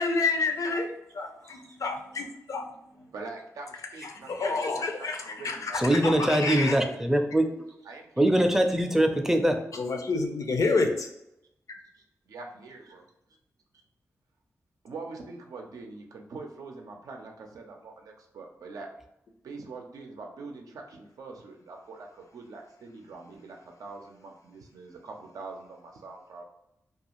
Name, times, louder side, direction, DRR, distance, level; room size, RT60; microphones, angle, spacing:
voice 1, 0.0-2.7 2.9-3.1 4.0-6.8 9.7-11.1, left 3 dB, 70° left, 4 dB, 0.4 m, -29 dB
voice 2, 1.4-1.8 3.1-6.0 6.4-7.0 7.8-8.8 11.9-13.1 14.8-18.9 19.4-26.4, right 3 dB, 90° right, 2 dB, 0.5 m, -44 dB
voice 3, 5.7-7.5 8.2-9.6, right 1 dB, 5° right, 5 dB, 0.4 m, -23 dB
2.4 x 2.3 x 2.9 m, 0.83 s
cardioid pair, 70°, 6 cm